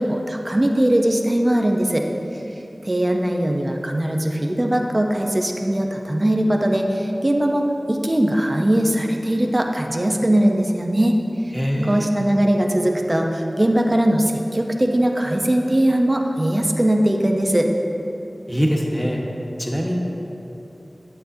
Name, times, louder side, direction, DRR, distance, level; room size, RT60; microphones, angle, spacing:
voice 1, 0.0-2.0 2.8-11.2 11.8-17.7, right 1 dB, 35° right, 2 dB, 0.7 m, -20 dB
voice 2, 11.5-12.1 18.5-19.2 19.6-20.0, equal, 5° left, -1 dB, 1.2 m, -22 dB
9.0 x 9.0 x 2.7 m, 2.9 s
wide cardioid pair, 45°, 0 cm